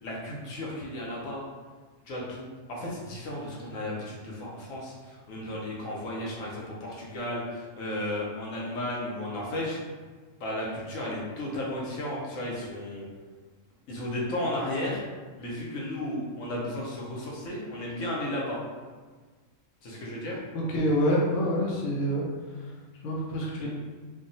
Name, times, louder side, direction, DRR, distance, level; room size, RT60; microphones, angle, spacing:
voice 1, 0.0-1.4 2.1-9.8 10.4-13.0 13.9-15.0 15.4-18.6 19.8-20.4 23.6-23.7, left 1 dB, 90° left, -4 dB, 1.1 m, -34 dB
voice 2, 20.5-22.2 23.0-23.7, equal, 70° left, -4 dB, 0.9 m, -26 dB
3.3 x 2.2 x 2.6 m, 1.4 s
omnidirectional pair, 1.4 m